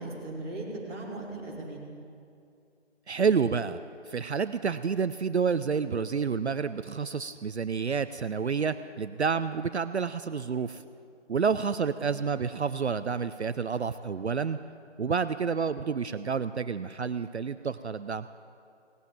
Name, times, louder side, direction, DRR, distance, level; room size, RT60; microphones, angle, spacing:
voice 1, 0.0-1.8, right 2 dB, 10° right, -10 dB, 2.3 m, -38 dB
voice 2, 3.1-3.8 4.1-10.8 11.3-14.6 15.0-18.3, right 6 dB, 65° right, 12 dB, 0.5 m, -29 dB
17.5 x 8.3 x 8.9 m, 2.5 s
figure-of-eight pair, 170°, 36 cm